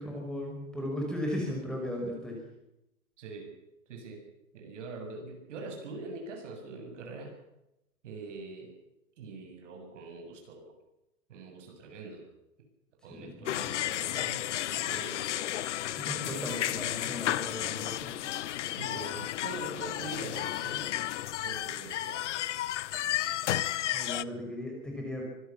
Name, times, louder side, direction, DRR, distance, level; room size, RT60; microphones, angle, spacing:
voice 1, 0.0-2.4 13.1-13.5 16.0-18.1 23.9-25.2, left 1 dB, ahead, 0 dB, 5.6 m, -36 dB
voice 2, 3.2-3.5 3.9-4.2 4.5-7.3 8.0-8.7 9.2-10.7 11.3-12.2 13.0-14.5 14.8-15.2 16.2-16.4 18.8-20.8 21.4-22.3, right 3 dB, 55° right, 4 dB, 7.6 m, -43 dB
sound 1, 13.5-24.2, left 13 dB, 55° left, 0.8 m, -33 dB
25.0 x 16.5 x 7.4 m, 0.89 s
hypercardioid pair, 140°, 44 cm